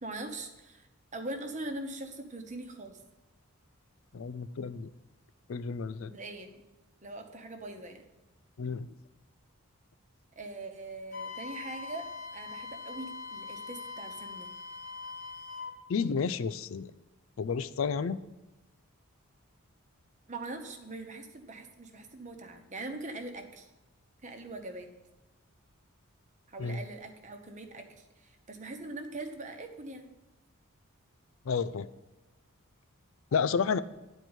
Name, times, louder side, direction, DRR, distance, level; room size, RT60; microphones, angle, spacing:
voice 1, 0.0-3.0 6.0-6.6 7.0-8.1 10.4-12.1 12.3-14.5 20.3-23.7 24.2-24.9 26.5-30.2, right 2 dB, 35° right, 5 dB, 1.1 m, -42 dB
voice 2, 4.1-4.9 5.5-6.1 8.6-8.9 15.9-16.9 17.4-18.2 26.6-26.8 31.5-31.9 33.3-33.8, left 5 dB, 60° left, 14 dB, 0.4 m, -31 dB
Wind instrument woodwind instrument, 11.1-15.8, left 4 dB, 40° left, 1.1 m, -42 dB
10.5 x 4.5 x 8.0 m, 1.1 s
head